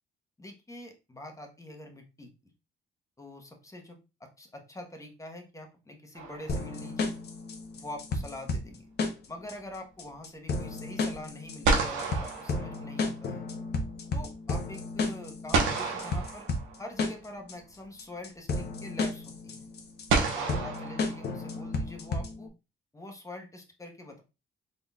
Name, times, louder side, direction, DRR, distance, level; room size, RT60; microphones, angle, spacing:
voice 1, 0.4-2.3 3.2-7.1 7.7-8.8 9.3-13.4 14.1-16.5 16.8-19.6 20.3-22.5 22.9-24.2, left 1 dB, 15° left, 3 dB, 1.1 m, -44 dB
sound 1, 6.2-7.0 11.1-11.2 11.6-13.4 15.5-17.1 18.5-18.6 20.1-21.7, right 4 dB, 85° right, 1.0 m, -30 dB
sound 2, 6.5-22.5, left 3 dB, 55° left, 0.9 m, -33 dB
3.9 x 3.7 x 2.3 m, 0.28 s
cardioid pair, 90°, 20 cm